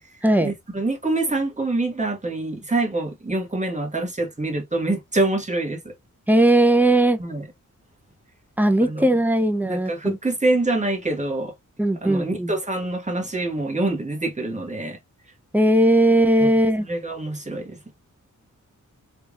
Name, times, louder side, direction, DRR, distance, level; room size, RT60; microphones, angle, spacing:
voice 1, 0.4-5.9 7.2-7.5 8.8-9.0 9.6-11.5 12.0-15.0 16.4-17.8, right 2 dB, 20° right, 1.6 m, -25 dB
voice 2, 6.3-7.2 8.6-10.2 11.8-12.5 15.5-16.9, right 1 dB, 5° right, 0.6 m, -18 dB
3.3 x 3.3 x 2.4 m
cardioid pair, 75°, 32 cm